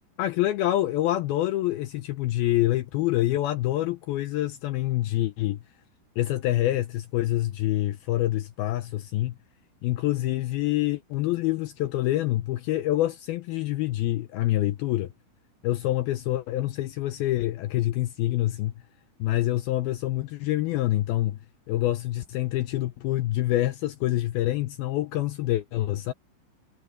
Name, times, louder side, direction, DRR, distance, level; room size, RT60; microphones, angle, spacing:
voice 1, 0.2-5.6 6.2-9.4 9.8-15.1 15.6-18.7 19.2-21.4 21.7-26.1, left 15 dB, 85° left, 2.2 m, -26 dB
omnidirectional pair, 5.2 m